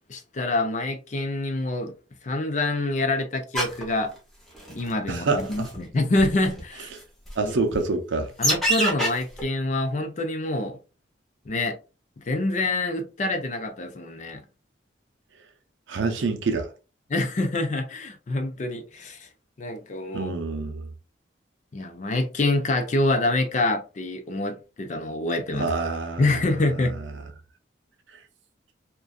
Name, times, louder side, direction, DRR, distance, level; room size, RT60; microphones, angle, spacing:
voice 1, 0.1-1.9 2.2-4.1 4.7-6.9 7.4-7.5 8.4-10.8 11.5-11.8 12.2-14.4 17.1-19.3 19.6-20.3 21.7-25.7 26.2-27.0, left 2 dB, 40° left, 0.4 m, -26 dB
sound 1, 3.5-3.8 4.6-4.9 5.4-5.8 6.2-6.3 6.6-6.7 7.3-7.4 7.7-7.8 8.4-9.1 9.4-9.5, right 1 dB, ahead, 0.7 m, -24 dB
voice 2, 5.1-5.7 7.4-8.3 15.9-16.7 20.1-20.9 25.6-26.4, right 3 dB, 85° right, 0.5 m, -26 dB
2.5 x 2.2 x 2.2 m
head